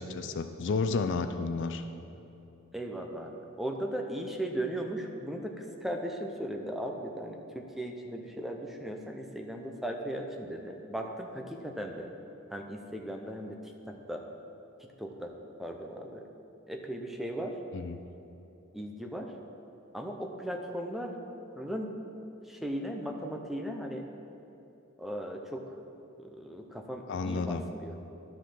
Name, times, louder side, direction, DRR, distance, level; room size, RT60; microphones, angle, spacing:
voice 1, 0.0-1.8 17.7-18.0 27.1-27.7, left 4 dB, 55° left, 9 dB, 0.4 m, -31 dB
voice 2, 2.7-12.1 12.5-13.6 13.9-14.2 15.0-15.3 15.6-16.2 16.7-17.6 18.7-19.3 19.9-21.1 21.6-21.9 22.5-24.1 25.0-25.6 26.2-28.0, right 1 dB, ahead, 2 dB, 0.6 m, -37 dB
11.5 x 5.2 x 5.9 m, 2.9 s
head